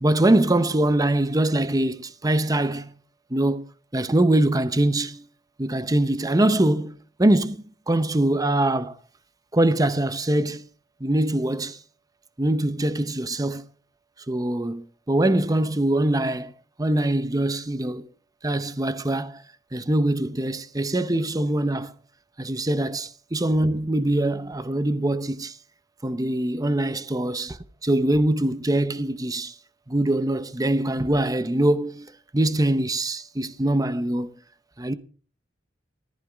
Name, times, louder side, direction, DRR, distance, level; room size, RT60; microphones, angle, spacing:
voice 1, 0.0-2.9 3.3-3.6 3.9-5.3 5.6-9.0 9.5-10.6 11.0-11.8 12.4-13.6 14.3-16.5 16.8-18.1 18.4-19.4 19.7-21.9 22.4-25.6 26.0-29.5 29.9-34.3 34.8-34.9, right 1 dB, 20° right, 0.8 m, -23 dB
15.0 x 14.5 x 3.5 m
head